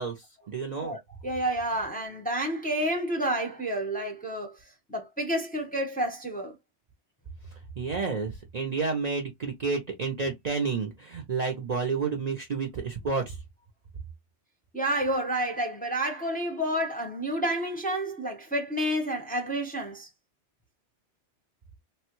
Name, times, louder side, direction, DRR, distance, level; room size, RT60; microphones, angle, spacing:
voice 1, 0.0-1.0 7.5-13.4, right 4 dB, 45° right, 0.6 m, -30 dB
voice 2, 0.8-4.5 4.9-6.5 14.7-20.1, right 1 dB, 10° left, 0.6 m, -29 dB
3.3 x 2.2 x 2.9 m
omnidirectional pair, 1.2 m